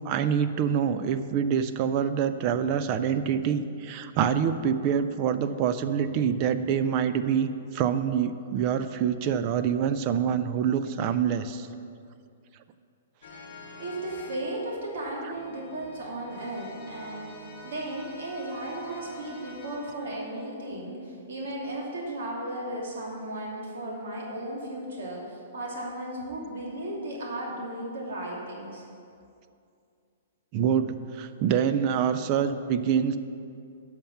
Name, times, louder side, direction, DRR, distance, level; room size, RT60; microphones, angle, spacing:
voice 1, 0.0-11.7 30.5-33.2, right 8 dB, 25° right, 11 dB, 0.3 m, -26 dB
sound 1, 13.2-20.5, left 1 dB, 50° left, 1.6 m, -47 dB
voice 2, 13.8-17.2 17.6-28.8, right 1 dB, 65° right, -3 dB, 2.5 m, -35 dB
11.0 x 5.9 x 5.8 m, 2.4 s
hypercardioid pair, 180°, 0 cm